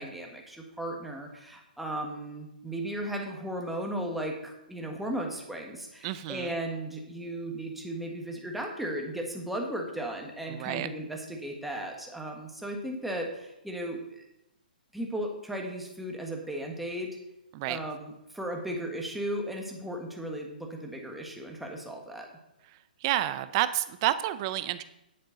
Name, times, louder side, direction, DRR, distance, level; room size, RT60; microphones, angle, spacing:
voice 1, 0.0-14.2 14.9-17.2 17.6-22.3, right 1 dB, ahead, 0 dB, 1.5 m, -36 dB
voice 2, 6.0-6.5 10.5-10.9 17.5-17.8 23.0-24.8, right 14 dB, 35° right, 13 dB, 0.6 m, -29 dB
10.0 x 8.5 x 4.0 m, 0.87 s
hypercardioid pair, 145°, 5 cm